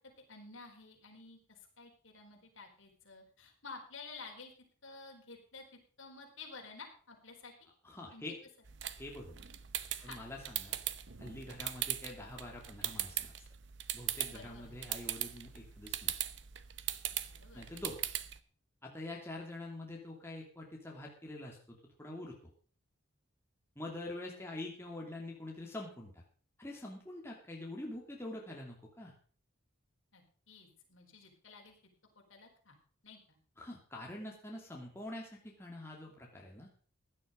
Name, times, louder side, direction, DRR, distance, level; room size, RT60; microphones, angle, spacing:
voice 1, 0.3-4.5 4.8-5.6 6.0-7.5 8.1-8.2 10.0-10.2 14.3-14.8 17.3-17.7 24.2-24.4 30.1-31.8 32.1-32.8 33.0-33.4, left 4 dB, 65° left, 2 dB, 4.5 m, -52 dB
voice 2, 7.8-8.3 9.0-9.4 10.0-10.8 11.2-13.3 13.9-16.1 17.5-18.0 18.8-22.4 23.8-26.2 26.6-29.1 33.6-36.7, left 1 dB, 10° left, -1 dB, 2.7 m, -45 dB
sound 1, 8.6-18.4, right 12 dB, 55° right, 0.9 m, -40 dB
16.0 x 10.5 x 5.2 m, 0.42 s
head